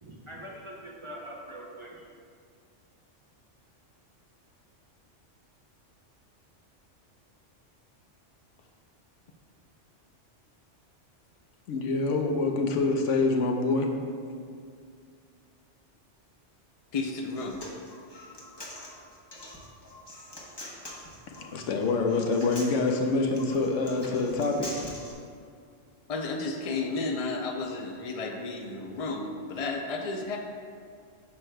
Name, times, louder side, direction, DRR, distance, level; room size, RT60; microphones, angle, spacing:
voice 1, 0.0-2.1, right 1 dB, 35° right, -3 dB, 0.6 m, -43 dB
voice 2, 11.7-13.9 21.5-24.7, left 3 dB, 85° left, 3 dB, 1.0 m, -26 dB
voice 3, 16.9-17.6 26.1-30.4, left 3 dB, 60° left, 2 dB, 0.3 m, -32 dB
Human voice, 17.3-25.1, left 1 dB, 25° left, 0.9 m, -44 dB
9.2 x 6.3 x 2.2 m, 2.3 s
omnidirectional pair, 1.2 m